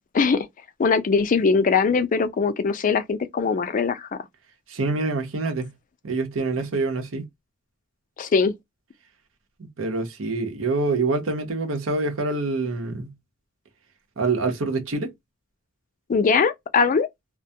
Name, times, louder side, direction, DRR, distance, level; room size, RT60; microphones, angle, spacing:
voice 1, 0.1-0.5 0.8-4.1 8.2-8.5 16.1-17.1, left 5 dB, 40° left, 0.4 m, -21 dB
voice 2, 4.7-5.7 6.0-7.2 9.6-13.1 14.2-15.1, right 3 dB, 85° right, 0.8 m, -26 dB
2.2 x 2.1 x 2.6 m
head